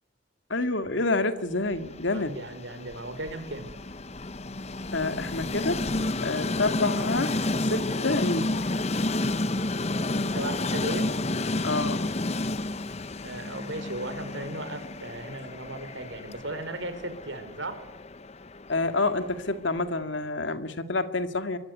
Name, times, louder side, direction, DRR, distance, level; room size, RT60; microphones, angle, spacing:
voice 1, 0.5-2.4 4.9-5.8 6.2-7.3 7.6-8.5 11.6-12.1 18.7-21.6, left 2 dB, 70° left, 9 dB, 2.2 m, -28 dB
Train, 1.7-19.8, left 2 dB, 35° left, 0.9 m, -31 dB
voice 2, 2.1-3.7 10.2-11.2 13.2-17.8, right 2 dB, 75° right, 8 dB, 5.3 m, -36 dB
24.0 x 23.0 x 9.5 m, 0.85 s
head